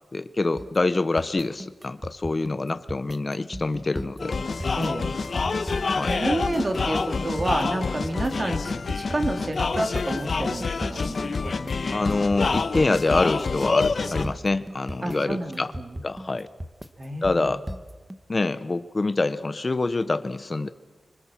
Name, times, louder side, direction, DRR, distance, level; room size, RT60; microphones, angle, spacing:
voice 1, 0.1-4.3 5.9-6.2 11.9-15.7 16.0-16.5 17.2-17.6 18.3-20.7, left 3 dB, 35° left, 12 dB, 0.8 m, -25 dB
sound 1, 0.6-18.2, equal, 10° right, 1.2 m, -37 dB
sound 2, 4.2-14.2, left 4 dB, 55° left, 1.2 m, -27 dB
voice 2, 4.8-5.2 6.0-11.1 15.0-16.0 17.0-17.5, right 1 dB, 35° right, 5 dB, 3.0 m, -29 dB
26.5 x 24.5 x 7.4 m, 1.3 s
wide cardioid pair, 130°, 0 cm